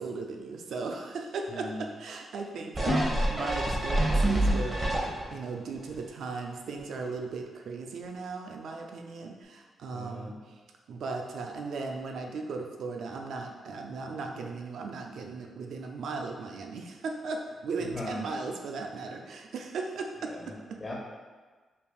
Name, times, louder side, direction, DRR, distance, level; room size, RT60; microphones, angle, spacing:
voice 1, 0.0-10.5 10.9-20.3 20.7-20.8, right 4 dB, 75° right, 2 dB, 0.4 m, -37 dB
voice 2, 1.5-1.8 3.2-3.3 9.9-10.3 17.8-18.2 20.3-20.5 20.8-20.9, left 2 dB, 30° left, -3 dB, 1.1 m, -39 dB
sound 1, 2.8-5.5 5.9-6.0, right 1 dB, 25° right, 1.1 m, -26 dB
5.2 x 2.6 x 2.3 m, 1.3 s
supercardioid pair, 55°, 0 cm